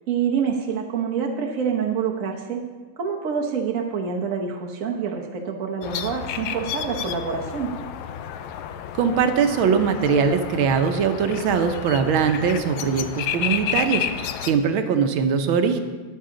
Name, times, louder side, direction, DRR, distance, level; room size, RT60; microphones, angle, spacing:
voice 1, 0.1-2.6 3.0-7.7, right 6 dB, 50° right, 0 dB, 1.1 m, -26 dB
sound 1, 5.8-14.5, left 9 dB, 90° left, 1.5 m, -31 dB
voice 2, 8.9-15.8, right 6 dB, 75° right, 7 dB, 1.6 m, -21 dB
13.5 x 10.0 x 3.8 m, 1.3 s
omnidirectional pair, 2.3 m